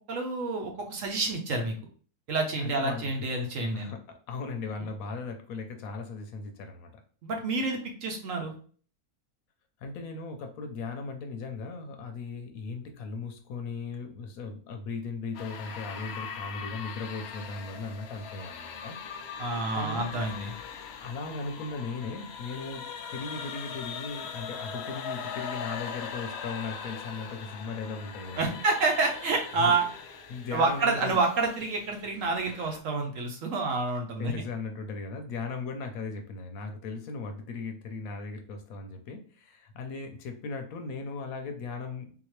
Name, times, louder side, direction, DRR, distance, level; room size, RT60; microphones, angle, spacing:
voice 1, 0.1-1.7 2.3-3.9 7.2-8.5 19.4-20.5 28.4-29.9 30.5-34.3, right 3 dB, 65° right, 3 dB, 1.0 m, -28 dB
voice 2, 2.6-3.5 3.7-4.0 4.3-6.9 9.8-19.0 19.7-20.1 21.0-28.6 29.6-29.7 30.3-31.2 34.2-42.1, left 4 dB, 70° left, 5 dB, 1.0 m, -37 dB
sound 1, 15.3-32.8, left 6 dB, 90° left, 0.5 m, -41 dB
3.7 x 2.8 x 3.1 m, 0.43 s
omnidirectional pair, 1.7 m